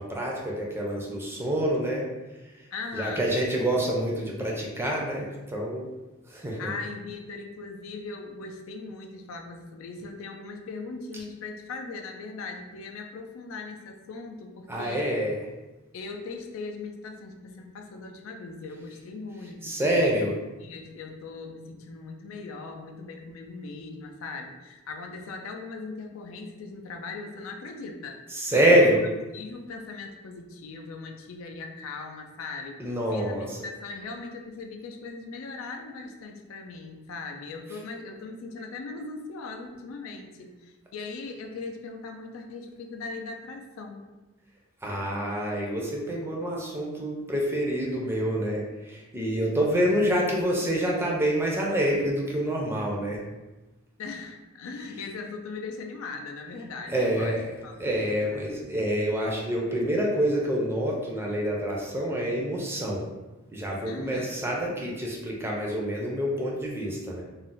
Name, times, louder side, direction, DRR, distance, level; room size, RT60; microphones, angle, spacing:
voice 1, 0.0-2.1 2.9-5.9 6.3-6.7 14.7-15.4 19.6-20.4 28.3-29.0 32.8-33.5 44.8-53.2 56.9-57.5 57.8-63.1 63.5-67.2, equal, 10° right, -2 dB, 0.4 m, -27 dB
voice 2, 2.7-3.3 6.6-15.1 15.9-20.1 20.6-28.2 28.5-28.7 29.3-32.8 33.1-44.0 54.0-58.3 63.8-64.3, left 3 dB, 80° left, 3 dB, 0.4 m, -39 dB
2.4 x 2.1 x 3.7 m, 1.1 s
head